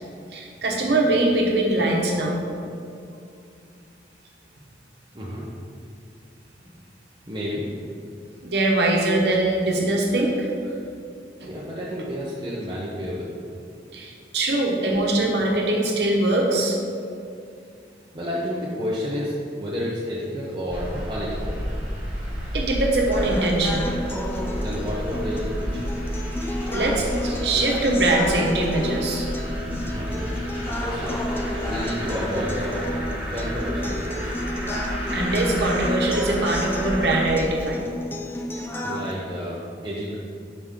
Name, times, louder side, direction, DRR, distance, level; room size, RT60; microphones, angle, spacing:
voice 1, 0.3-2.4 8.4-10.5 11.4-11.5 13.9-16.8 22.5-23.9 26.7-29.3 29.7-29.9 35.1-37.8, right 2 dB, 75° right, -1 dB, 1.0 m, -22 dB
voice 2, 5.1-5.5 7.3-7.7 11.4-13.3 18.1-21.6 24.6-25.9 29.9-30.3 30.7-31.2 31.5-32.8 33.3-34.3 38.8-40.1, equal, 25° right, -6 dB, 0.6 m, -30 dB
sound 1, 20.7-37.2, equal, 10° right, 1.3 m, -31 dB
sound 2, 23.1-39.1, left 1 dB, 15° left, 0.3 m, -31 dB
6.0 x 4.9 x 3.6 m, 2.4 s
head